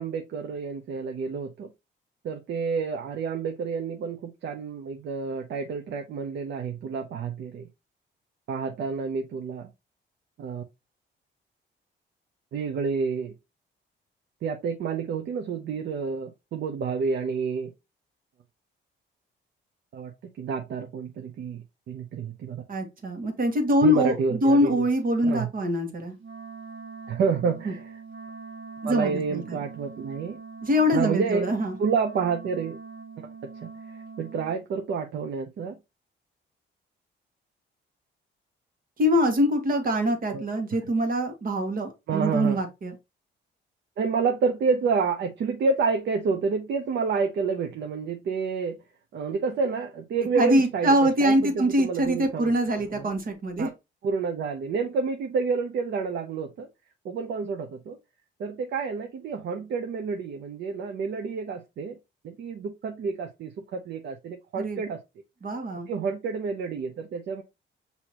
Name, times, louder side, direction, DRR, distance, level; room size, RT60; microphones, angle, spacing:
voice 1, 0.0-1.7 2.2-7.7 8.5-9.7 10.4-10.6 12.5-13.3 14.4-17.7 19.9-20.1 20.4-22.6 23.8-24.9 25.3-25.5 27.1-28.0 28.8-30.4 30.9-31.5 31.8-32.8 33.2-33.3 33.6-33.7 34.2-35.7 40.3-40.4 42.1-42.6 44.0-48.8 49.1-52.5 52.9-53.1 53.6-53.7 54.0-56.7 57.0-58.0 58.4-62.0 62.2-65.0 65.9-67.4, right 5 dB, 60° right, 0.6 m, -29 dB
voice 2, 22.7-26.1 27.6-27.7 28.8-29.6 30.6-31.8 39.0-42.9 50.3-53.7 64.6-64.8 65.4-65.9, equal, 45° right, 1.4 m, -24 dB
Wind instrument woodwind instrument, 26.2-34.6, right 4 dB, 85° right, 1.0 m, -43 dB
6.0 x 2.8 x 2.9 m
cardioid pair, 90°, 20 cm